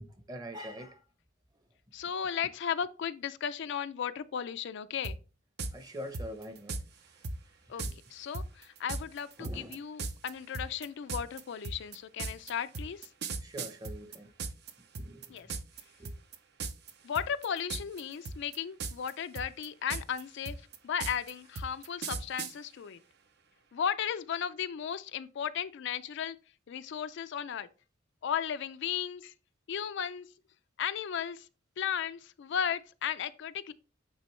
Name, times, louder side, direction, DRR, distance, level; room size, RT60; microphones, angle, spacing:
voice 1, 0.3-1.0 5.7-6.7 9.4-9.8 13.4-14.3 15.0-15.2 16.0-16.1, equal, 20° right, 0.8 m, -43 dB
voice 2, 1.9-5.2 7.7-7.8 8.1-13.1 15.3-15.5 17.0-20.6 20.8-23.0 23.7-26.4 26.7-27.7 28.2-29.3 29.7-30.3 30.8-31.5 31.8-33.7, left 8 dB, 60° left, 0.4 m, -35 dB
sound 1, 5.0-5.2 5.6-5.7 6.1-6.8 7.2-7.4 7.8-7.9 8.3-14.7 15.0-15.8 16.1-16.4 16.6-16.9 17.2-18.0 18.3-19.1 19.4-22.5, right 3 dB, 55° right, 0.7 m, -37 dB
8.9 x 3.7 x 3.2 m
head